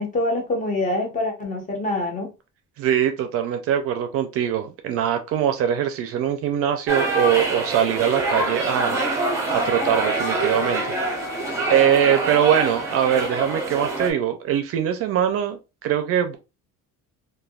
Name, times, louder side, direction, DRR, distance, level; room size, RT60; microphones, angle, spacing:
voice 1, 0.0-2.3, left 2 dB, 25° left, 0.7 m, -25 dB
voice 2, 2.8-11.0 11.3-11.4 11.7-16.4, right 9 dB, 50° right, 0.4 m, -22 dB
sound 1, 6.9-14.1, right 2 dB, 10° right, 0.7 m, -25 dB
Wind instrument woodwind instrument, 9.5-13.4, left 7 dB, 60° left, 0.7 m, -35 dB
3.3 x 2.2 x 2.3 m
cardioid pair, 170°, 31 cm